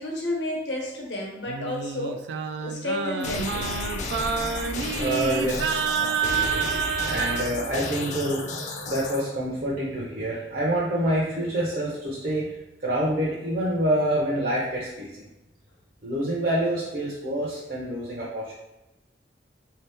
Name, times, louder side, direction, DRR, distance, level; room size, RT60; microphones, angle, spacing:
voice 1, 0.0-2.2 2.6-3.5, left 1 dB, 85° left, -1 dB, 1.0 m, -31 dB
Singing, 1.5-7.5, right 7 dB, 80° right, 0.3 m, -28 dB
sound 1, 3.2-9.2, left 2 dB, 45° left, 0.5 m, -33 dB
voice 2, 5.0-6.7 7.0-8.4 8.8-15.2 16.0-18.5, right 1 dB, 50° right, -6 dB, 0.6 m, -27 dB
3.6 x 2.8 x 3.4 m, 0.99 s
head